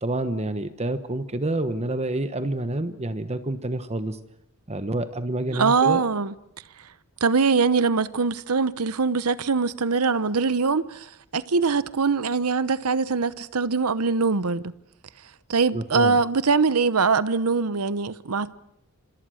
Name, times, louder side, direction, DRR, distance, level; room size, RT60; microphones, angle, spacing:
voice 1, 0.0-4.2 4.7-6.0 15.7-16.2, right 2 dB, 30° right, 1.1 m, -28 dB
voice 2, 5.5-6.3 7.2-14.7 15.5-18.5, right 4 dB, 90° right, 0.9 m, -22 dB
27.5 x 26.5 x 6.5 m
head